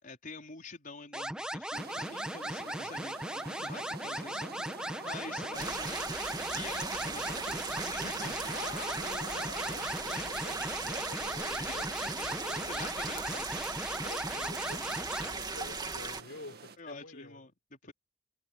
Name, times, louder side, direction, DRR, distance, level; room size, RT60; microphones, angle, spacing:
voice 1, 0.0-6.2 6.5-8.5 9.7-10.4 11.5-14.1 16.8-17.9, left 3 dB, 45° left, 4.7 m, -47 dB
sound 1, 1.1-15.3, right 1 dB, 5° right, 1.3 m, -38 dB
sound 2, 1.7-16.8, right 4 dB, 50° right, 2.1 m, -47 dB
sound 3, 5.5-16.2, right 4 dB, 20° right, 2.1 m, -38 dB
voice 2, 8.5-12.8 14.0-17.5, left 3 dB, 75° left, 4.1 m, -48 dB
head